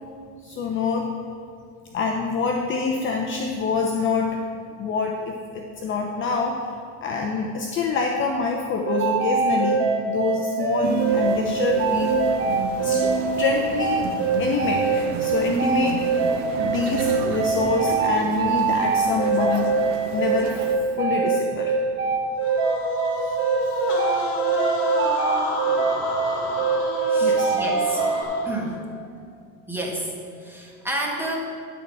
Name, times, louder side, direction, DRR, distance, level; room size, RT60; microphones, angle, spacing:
voice 1, 0.4-1.1 1.9-4.4 4.8-6.6 7.0-12.1 12.8-13.0 13.4-14.0 14.4-16.0 16.5-20.5 20.9-21.8 23.2-23.3 27.2-27.5, left 4 dB, 30° left, 1 dB, 0.7 m, -26 dB
sound 1, 8.9-28.2, right 5 dB, 30° right, 1.3 m, -23 dB
sound 2, 10.8-20.8, right 4 dB, 70° right, 1.2 m, -31 dB
sound 3, 22.4-28.7, left 2 dB, 50° left, 2.2 m, -30 dB
voice 2, 27.1-28.1 28.4-28.8 29.7-30.1 30.4-31.5, right 1 dB, 5° right, -2 dB, 1.6 m, -30 dB
12.0 x 4.2 x 6.1 m, 2.2 s
supercardioid pair, 120°, 39 cm